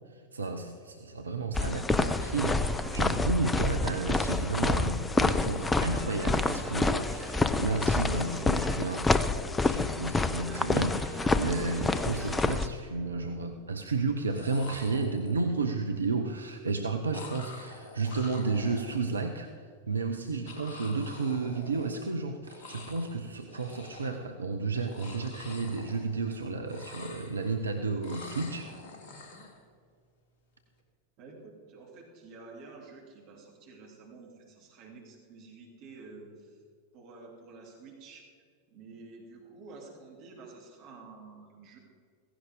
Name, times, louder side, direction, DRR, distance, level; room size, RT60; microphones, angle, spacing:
voice 1, 0.1-9.1 9.6-19.5 19.9-28.7, right 3 dB, 75° right, 5 dB, 0.8 m, -32 dB
sound 1, 1.5-12.7, left 3 dB, 15° left, 0.6 m, -28 dB
sound 2, 1.9-12.7, right 3 dB, 15° right, 1.9 m, -46 dB
sound 3, 13.0-13.1 14.1-14.2 14.3-15.6 17.1-19.3 20.5-22.2 22.4-23.2 23.5-24.3 24.7-26.4 26.6-27.6 28.0-29.6, left 3 dB, 50° left, 2.2 m, -47 dB
voice 2, 31.2-36.6 36.9-38.3 38.7-41.8, right 3 dB, 40° right, -2 dB, 3.4 m, -50 dB
16.5 x 16.0 x 3.8 m, 2.1 s
figure-of-eight pair, 90°, 0 cm